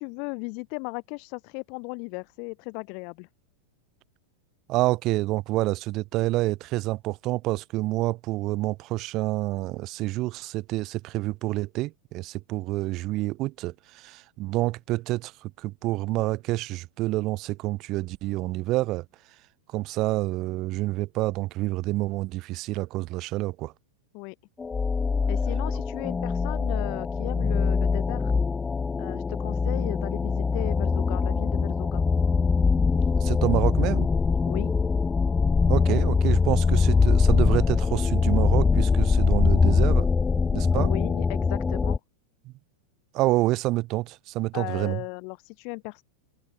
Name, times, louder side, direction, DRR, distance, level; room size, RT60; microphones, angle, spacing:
voice 1, 0.0-3.3 24.1-24.3 25.3-28.3 29.0-32.0 34.5-34.7 40.7-42.0 44.5-46.0, left 37 dB, 45° left, 4.5 m, -36 dB
voice 2, 4.7-19.0 19.7-23.7 33.2-34.1 35.7-40.1 40.5-40.9 42.4-42.5 43.1-45.0, right 19 dB, 40° right, 1.6 m, -28 dB
sound 1, 24.6-42.0, left 5 dB, 15° left, 0.3 m, -23 dB
figure-of-eight pair, 90°, 0 cm